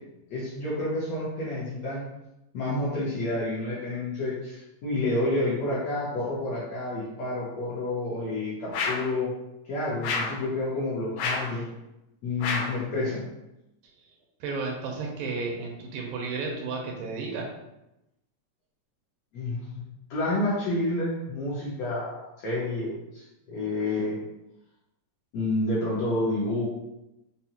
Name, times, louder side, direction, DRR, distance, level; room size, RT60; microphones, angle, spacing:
voice 1, 0.3-2.0 2.5-9.3 9.6-11.7 12.2-13.2 19.3-24.2 25.3-26.7, left 2 dB, 70° left, -7 dB, 1.6 m, -29 dB
sound 1, 8.7-9.1 10.0-10.4 11.2-11.6 12.4-12.8, left 4 dB, 90° left, 2.4 m, -29 dB
voice 2, 14.4-17.5, right 4 dB, 85° right, 1 dB, 2.4 m, -32 dB
5.8 x 2.1 x 2.8 m, 0.91 s
omnidirectional pair, 3.8 m